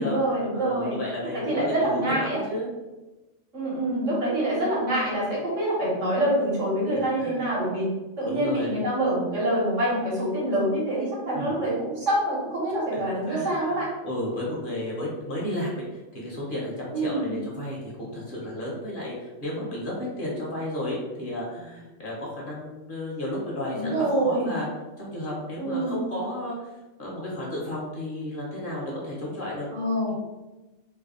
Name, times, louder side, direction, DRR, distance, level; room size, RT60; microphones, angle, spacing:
voice 1, 0.0-0.9 1.3-2.4 3.5-7.9 8.2-13.9 16.9-17.3 23.7-24.5 25.6-26.0 29.7-30.1, right 1 dB, 70° right, -6 dB, 1.7 m, -26 dB
voice 2, 0.5-2.7 6.9-7.4 8.2-8.7 11.3-11.6 13.3-13.8 14.0-15.8 16.1-24.7 25.0-26.7 27.0-29.7 30.0-30.1, left 1 dB, 45° left, -4 dB, 0.9 m, -33 dB
3.3 x 2.2 x 3.7 m, 1.1 s
omnidirectional pair, 1.4 m